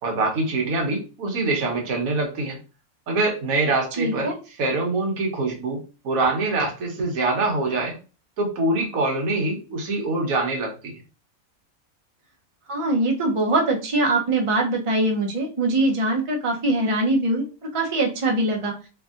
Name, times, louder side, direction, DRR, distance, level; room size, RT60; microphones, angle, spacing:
voice 1, 0.0-2.6 3.1-4.3 4.6-5.8 6.0-8.0 8.4-10.9, right 2 dB, 75° right, 1 dB, 1.2 m, -24 dB
voice 2, 4.0-4.3 12.7-17.4 17.7-18.7, right 2 dB, 50° right, 1 dB, 0.3 m, -22 dB
3.0 x 2.6 x 2.4 m, 0.34 s
omnidirectional pair, 1.5 m